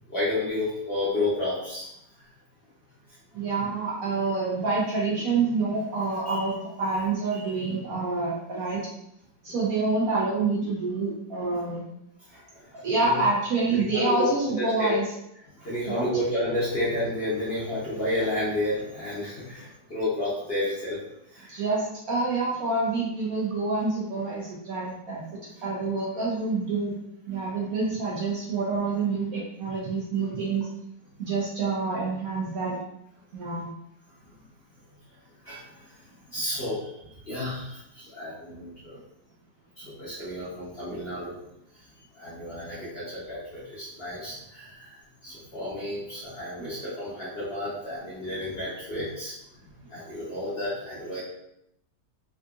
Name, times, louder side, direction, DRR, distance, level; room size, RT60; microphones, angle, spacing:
voice 1, 0.1-1.9 6.3-6.5 7.3-7.7 12.3-12.6 13.0-13.2 13.7-14.3 14.6-14.9 15.6-21.0 21.3-21.5 35.4-35.6 36.3-36.8 37.3-37.8 38.1-39.0 39.8-41.4 42.2-44.9 45.2-49.3 49.9-51.2, left 1 dB, 45° left, -10 dB, 0.9 m, -31 dB
voice 2, 3.3-8.9 9.4-11.9 12.7-15.1 15.9-16.1 21.5-26.9 27.3-30.7 31.2-32.8 33.3-33.7 46.6-46.7, right 3 dB, 65° right, -5 dB, 1.0 m, -27 dB
3.7 x 2.4 x 2.4 m, 0.79 s
omnidirectional pair, 1.9 m